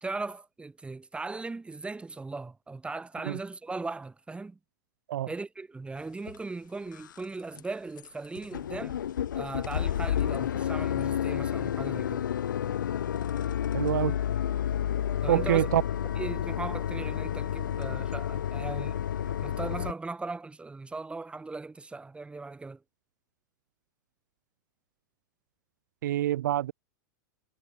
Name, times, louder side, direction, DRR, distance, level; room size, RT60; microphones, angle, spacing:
voice 1, 0.0-4.6 5.3-9.0 9.3-12.3 15.2-15.6 16.2-19.0 19.3-22.8, right 3 dB, 10° right, 1.7 m, -38 dB
sound 1, 6.3-6.4 6.9-7.2 7.6-7.7 8.0-8.1 8.3-19.9, left 10 dB, 75° left, 1.3 m, -30 dB
voice 2, 13.7-14.2 15.3-15.8 26.0-26.7, right 13 dB, 65° right, 0.5 m, -26 dB
hypercardioid pair, 100°, 10 cm